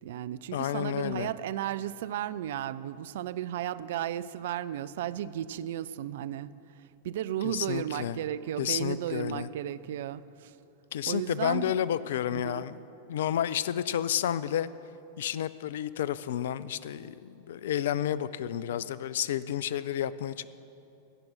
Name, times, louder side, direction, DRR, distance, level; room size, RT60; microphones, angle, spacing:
voice 1, 0.0-6.5 6.8-10.6 11.0-11.7 12.3-12.7, right 11 dB, 55° right, 14 dB, 0.3 m, -34 dB
voice 2, 0.5-1.3 7.4-8.2 8.6-9.5 10.9-12.8 13.1-14.7 15.2-20.5, left 10 dB, 60° left, 17 dB, 0.3 m, -31 dB
16.5 x 6.0 x 6.4 m, 2.8 s
figure-of-eight pair, 90°, 0 cm